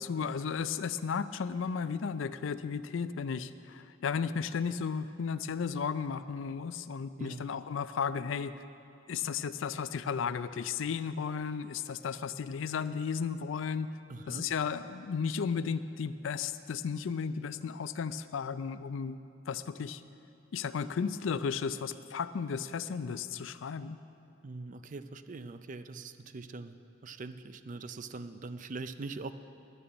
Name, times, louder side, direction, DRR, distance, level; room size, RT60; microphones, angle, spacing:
voice 1, 0.0-8.5 9.1-13.9 14.3-19.2 19.5-20.0 20.5-24.0, left 6 dB, 75° left, 13 dB, 0.4 m, -34 dB
voice 2, 7.2-7.5 14.1-14.5 24.4-26.8 27.0-29.3, right 3 dB, 40° right, 11 dB, 0.4 m, -42 dB
11.0 x 7.0 x 8.8 m, 2.6 s
head